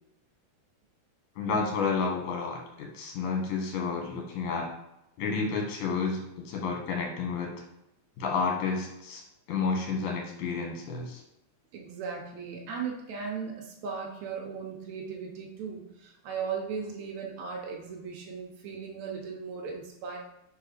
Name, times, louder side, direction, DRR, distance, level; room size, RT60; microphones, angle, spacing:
voice 1, 1.4-4.7 5.2-7.5 8.2-9.2 9.5-11.2, left 4 dB, 65° left, 0 dB, 2.0 m, -30 dB
voice 2, 11.7-20.2, right 6 dB, 85° right, 0 dB, 1.6 m, -37 dB
5.5 x 4.7 x 5.0 m, 0.88 s
omnidirectional pair, 4.6 m